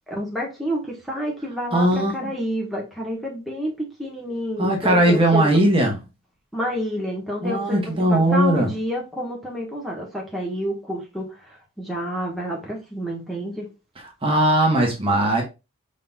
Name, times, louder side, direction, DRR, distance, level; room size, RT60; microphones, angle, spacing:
voice 1, 0.1-5.6 6.5-13.7, equal, ahead, 1.2 m, -29 dB
voice 2, 1.7-2.3 4.6-5.9 7.4-8.7 14.2-15.4, right 1 dB, 25° right, 1.2 m, -19 dB
5.3 x 3.9 x 2.3 m
head